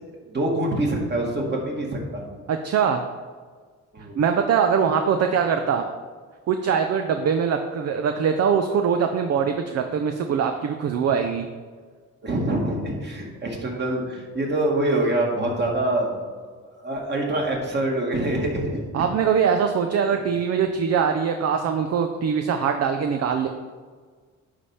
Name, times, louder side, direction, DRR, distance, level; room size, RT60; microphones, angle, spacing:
voice 1, 0.3-2.3 3.9-4.2 12.2-16.5 16.8-19.1 20.1-20.2, right 1 dB, 35° right, -1 dB, 2.0 m, -25 dB
voice 2, 2.5-3.0 4.2-5.8 6.5-11.5 18.9-23.5, right 7 dB, 55° right, 6 dB, 0.6 m, -22 dB
9.6 x 3.5 x 5.6 m, 1.5 s
cardioid pair, 90°, 30 cm